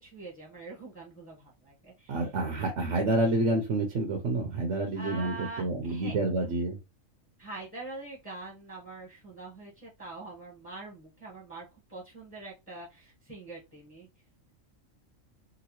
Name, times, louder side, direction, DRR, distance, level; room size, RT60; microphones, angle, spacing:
voice 1, 0.0-2.3 4.9-6.2 7.4-14.1, right 3 dB, 10° left, -3 dB, 1.1 m, -44 dB
voice 2, 2.1-6.8, right 2 dB, 65° right, 2 dB, 1.0 m, -28 dB
3.9 x 2.2 x 2.9 m, 0.26 s
omnidirectional pair, 1.4 m